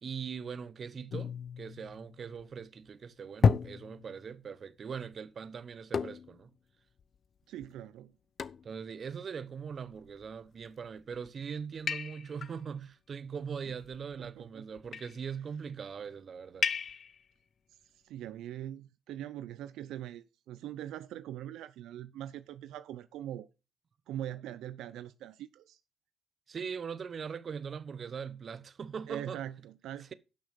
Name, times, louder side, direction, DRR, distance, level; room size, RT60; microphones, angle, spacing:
voice 1, 0.0-6.5 8.6-16.7 26.5-29.4, right 6 dB, 45° right, 1.0 m, -41 dB
sound 1, 1.1-2.6 3.4-4.4 5.9-6.5 7.0-7.1 7.6-7.7 8.4-8.8 9.9-10.3 11.0-11.3 11.9-12.6 13.7-14.3 14.8-15.2 16.6-17.2, left 6 dB, 50° left, 0.7 m, -32 dB
voice 2, 7.5-8.1 13.7-13.8 14.2-14.7 17.7-23.5 24.1-25.8 29.1-30.1, right 12 dB, 85° right, 0.5 m, -42 dB
11.5 x 6.4 x 5.2 m
cardioid pair, 90°, 0 cm